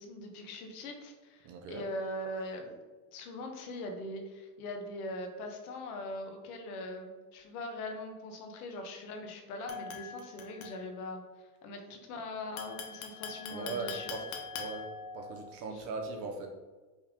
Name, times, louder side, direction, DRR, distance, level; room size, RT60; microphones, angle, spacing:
voice 1, 0.0-2.8 3.1-14.2 15.7-15.8, left 1 dB, 65° left, 4 dB, 1.2 m, -41 dB
voice 2, 1.4-1.8 13.5-16.5, right 3 dB, 30° right, 3 dB, 0.5 m, -40 dB
sound 1, 9.7-11.1 12.6-15.5, left 6 dB, 40° left, 0.9 m, -43 dB
5.5 x 3.4 x 5.0 m, 1.3 s
supercardioid pair, 165°, 47 cm